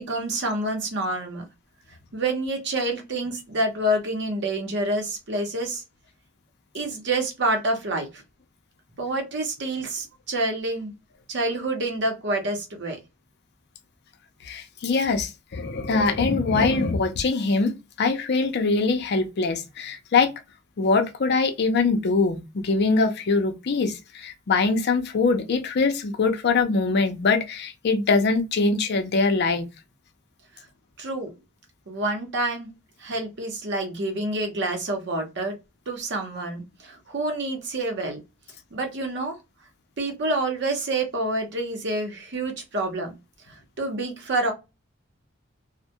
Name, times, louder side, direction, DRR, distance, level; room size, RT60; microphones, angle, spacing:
voice 1, 0.0-1.4 2.1-5.8 6.7-8.1 9.0-10.9 11.3-13.0 31.0-31.3 31.9-32.7 33.0-35.6 35.9-38.2 38.7-39.4 40.0-43.1 43.8-44.5, right 2 dB, 60° right, 0.8 m, -27 dB
voice 2, 14.4-17.7 18.0-20.3 20.8-29.7, left 4 dB, 55° left, 0.5 m, -23 dB
2.1 x 2.1 x 2.7 m
head